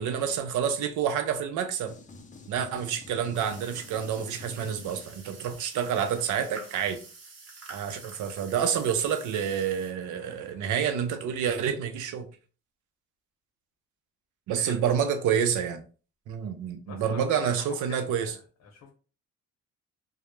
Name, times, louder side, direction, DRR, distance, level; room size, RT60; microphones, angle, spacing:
voice 1, 0.0-1.9 2.5-7.0 7.7-12.3 14.5-15.8 16.3-18.3, right 8 dB, 80° right, 0.5 m, -28 dB
sound 1, 1.9-5.5, left 3 dB, 25° left, 0.4 m, -48 dB
sound 2, 3.3-9.9, right 4 dB, 55° right, 0.9 m, -47 dB
voice 2, 16.9-18.9, left 5 dB, 60° left, 0.7 m, -45 dB
2.2 x 2.0 x 3.0 m
cardioid pair, 90°, 30 cm